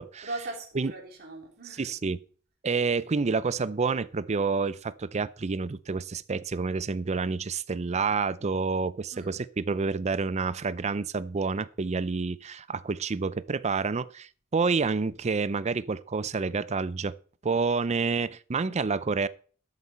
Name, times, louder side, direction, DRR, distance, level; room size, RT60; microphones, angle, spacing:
voice 1, 0.2-1.9 9.1-9.4, right 2 dB, 50° right, 3.4 m, -39 dB
voice 2, 1.8-2.2 2.6-17.2 17.4-19.3, right 4 dB, 35° right, 0.5 m, -28 dB
12.5 x 8.1 x 4.3 m
head